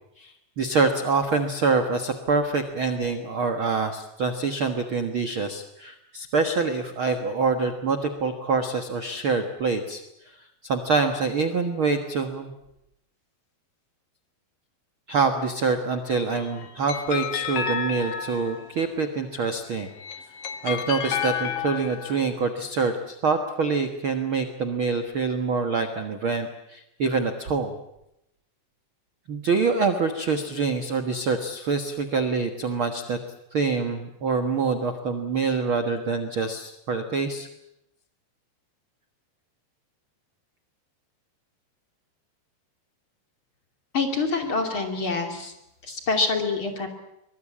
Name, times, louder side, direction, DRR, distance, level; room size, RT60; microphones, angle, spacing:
voice 1, 0.2-10.0 10.2-10.4 10.6-12.5 15.1-19.9 20.6-27.7 29.3-33.2 33.5-37.5, right 4 dB, 85° right, 7 dB, 1.1 m, -25 dB
sound 1, 16.2-18.8 19.8-22.2, left 7 dB, 60° left, 1.6 m, -31 dB
voice 2, 43.9-45.5 45.8-46.9, left 3 dB, 35° left, 4 dB, 3.0 m, -26 dB
24.0 x 21.5 x 8.6 m, 0.83 s
omnidirectional pair, 4.9 m